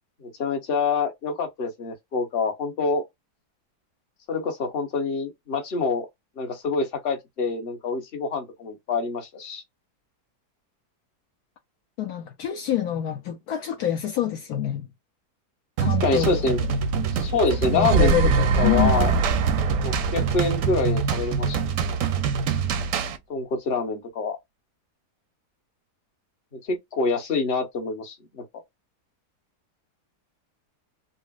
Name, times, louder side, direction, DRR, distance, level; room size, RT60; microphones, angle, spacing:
voice 1, 0.2-3.0 4.3-6.1 6.4-9.6 16.0-16.6 17.1-18.1 18.6-19.1 19.8-21.6 23.3-24.4 26.7-28.2, left 4 dB, 40° left, 1.1 m, -26 dB
voice 2, 12.0-14.9 15.8-16.5 17.5-19.2, left 11 dB, 70° left, 1.1 m, -27 dB
sound 1, 15.8-23.2, right 6 dB, 65° right, 0.8 m, -25 dB
sound 2, 17.5-21.7, right 5 dB, 85° right, 1.2 m, -24 dB
4.0 x 2.1 x 2.4 m
omnidirectional pair, 1.8 m